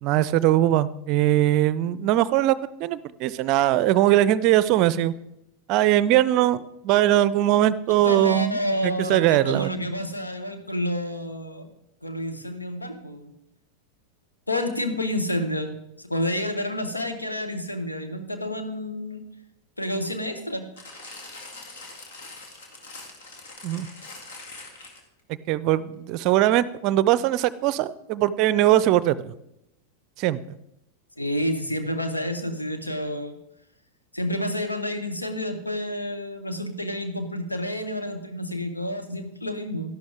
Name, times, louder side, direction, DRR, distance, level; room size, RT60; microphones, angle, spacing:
voice 1, 0.0-5.1 5.7-9.7 23.6-23.9 25.5-29.3 30.2-30.4, right 13 dB, 40° right, 18 dB, 0.5 m, -21 dB
voice 2, 8.0-11.7 12.0-13.3 14.5-19.2 19.8-21.0 31.2-33.4 34.1-39.9, left 1 dB, 85° left, 7 dB, 1.3 m, -29 dB
sound 1, 20.8-25.2 25.9-26.0, left 3 dB, 60° left, 2.2 m, -43 dB
12.5 x 11.5 x 3.5 m, 0.82 s
figure-of-eight pair, 90°, 0 cm